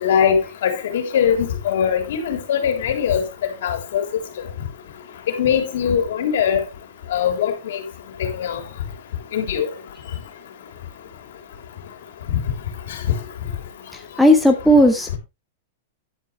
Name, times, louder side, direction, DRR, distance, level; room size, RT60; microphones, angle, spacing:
voice 1, 0.0-3.2 3.6-4.0 5.4-6.6 7.1-7.8 8.2-8.6 9.3-9.7, left 8 dB, 70° left, 3.4 m, -21 dB
voice 2, 14.2-15.2, equal, ahead, 1.2 m, -14 dB
10.5 x 9.5 x 3.3 m
supercardioid pair, 150°, 0 cm